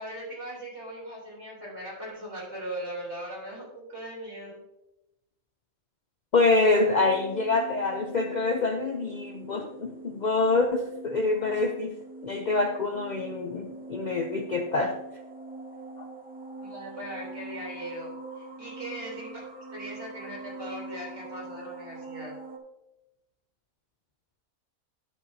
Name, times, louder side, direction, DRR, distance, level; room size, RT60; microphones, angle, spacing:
voice 1, 0.0-4.6 9.5-9.7 16.6-18.1 18.4-19.5 19.7-22.3, right 1 dB, 50° right, -4 dB, 3.6 m, -39 dB
voice 2, 6.3-12.0 12.2-14.9 16.0-16.1, left 3 dB, 85° left, 4 dB, 0.4 m, -26 dB
sound 1, 6.8-22.6, right 2 dB, 10° right, 0.5 m, -43 dB
10.0 x 7.9 x 2.8 m, 0.95 s
omnidirectional pair, 1.5 m